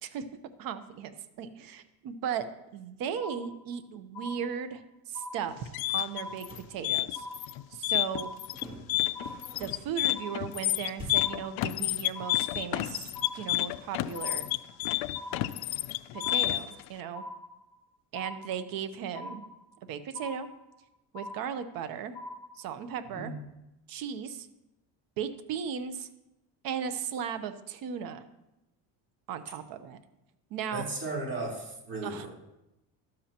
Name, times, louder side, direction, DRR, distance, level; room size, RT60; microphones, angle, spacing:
voice 1, 0.6-2.4 2.7-4.8 5.1-7.3 7.7-8.3 9.6-14.5 16.1-17.2 18.1-19.4 19.8-20.5 21.1-22.2 22.6-23.3 23.9-24.5 25.2-26.1 26.6-28.2 29.3-30.0 30.5-30.8 32.0-32.3, right 8 dB, 60° right, 10 dB, 1.0 m, -36 dB
sound 1, 3.1-3.8 4.1-4.8 5.1-5.8 6.1-6.8 7.1-7.8 8.1-8.8 9.1-9.8 10.1-10.8 11.1-11.8 12.1-12.8 13.1-13.8 14.1-14.8 15.1-15.8 16.1-16.8 17.1-17.8 18.1-18.8 19.1-19.8 20.1-20.8 21.1-21.8 22.1-22.8, left 1 dB, 15° left, 3.7 m, -44 dB
sound 2, 5.5-16.8, left 18 dB, 65° left, 0.5 m, -30 dB
sound 3, 6.4-6.8 8.5-10.0 10.9-11.4, equal, 15° right, 2.5 m, -45 dB
voice 2, 30.7-32.3, right 2 dB, 35° right, -4 dB, 3.9 m, -35 dB
12.5 x 12.5 x 3.0 m, 0.94 s
cardioid pair, 150°, 40 cm